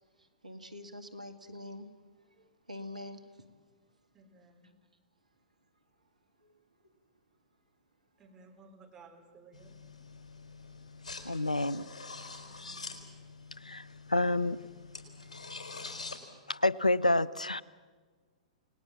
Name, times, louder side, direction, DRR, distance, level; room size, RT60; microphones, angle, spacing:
voice 1, 0.4-1.9 2.7-3.2 6.4-6.5, left 1 dB, 80° right, 8 dB, 2.2 m, -44 dB
voice 2, 4.1-4.8 8.2-9.8 12.4-12.9, right 3 dB, 15° right, 2 dB, 4.2 m, -57 dB
sound 1, 9.5-16.2, left 4 dB, 65° left, 4.3 m, -46 dB
voice 3, 11.2-11.9 13.6-14.6 16.5-17.6, left 2 dB, 85° left, 20 dB, 0.7 m, -28 dB
29.0 x 19.5 x 7.6 m, 1.4 s
figure-of-eight pair, 110°, 4 cm